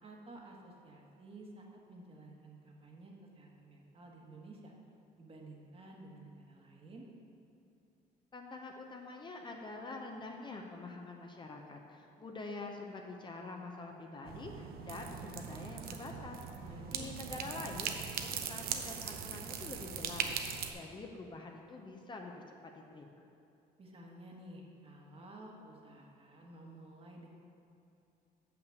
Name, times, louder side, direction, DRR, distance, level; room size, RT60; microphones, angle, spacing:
voice 1, 0.0-4.7 5.2-7.1 16.6-17.1 23.8-27.3, right 1 dB, 35° right, -1 dB, 1.3 m, -53 dB
voice 2, 8.3-16.4 16.9-20.3 20.7-23.3, left 3 dB, 30° left, 2 dB, 0.7 m, -46 dB
sound 1, 14.3-20.7, right 7 dB, 65° right, 0.7 m, -40 dB
6.6 x 5.9 x 6.5 m, 2.7 s
cardioid pair, 110°, 17 cm